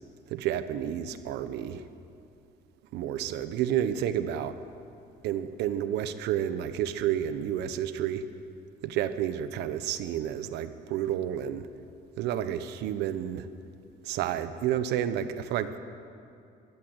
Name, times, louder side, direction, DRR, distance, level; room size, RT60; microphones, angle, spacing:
voice 1, 0.3-1.8 2.9-4.6 5.2-8.2 8.8-11.7 12.2-13.5 14.0-15.8, right 10 dB, 85° right, 11 dB, 1.1 m, -30 dB
21.0 x 15.0 x 8.2 m, 2.5 s
cardioid pair, 110°, 17 cm